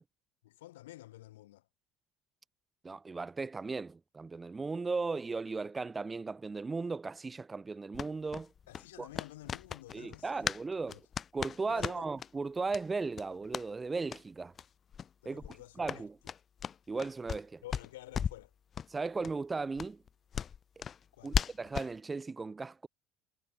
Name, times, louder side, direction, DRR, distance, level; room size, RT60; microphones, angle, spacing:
voice 1, 0.4-1.6 8.7-10.5 10.9-11.0 11.7-12.1 15.2-16.1 17.6-18.5 21.1-21.4, left 16 dB, 80° left, 7.8 m, -50 dB
voice 2, 2.8-8.5 9.0-9.1 9.9-11.0 11.3-14.5 15.2-16.2 16.9-17.6 18.9-20.0 21.2-22.9, right 4 dB, 25° right, 3.0 m, -36 dB
sound 1, 7.9-10.6 10.9-12.3 12.7-12.8 13.1-13.7 14.1-14.2 14.5-14.7 14.9-15.1 15.4-17.4 17.7-18.5 18.7-18.9 19.2-19.3 19.8-21.9, left 7 dB, 40° left, 2.1 m, -37 dB
hypercardioid pair, 65°, 0 cm